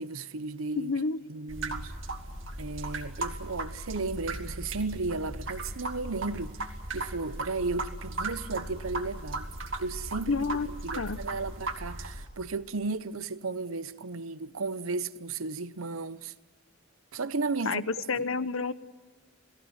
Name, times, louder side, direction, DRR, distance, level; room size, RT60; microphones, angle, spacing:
voice 1, 0.0-0.9 1.3-1.9 2.6-6.6 6.9-9.5 9.8-16.3 17.1-17.9 18.1-18.2, right 3 dB, 90° right, 0.9 m, -34 dB
voice 2, 0.8-1.2 10.3-10.7 11.0-11.2 17.6-18.7, left 4 dB, 80° left, 1.0 m, -29 dB
sound 1, 1.5-12.3, right 2 dB, 70° right, 2.5 m, -37 dB
29.0 x 18.5 x 8.2 m
head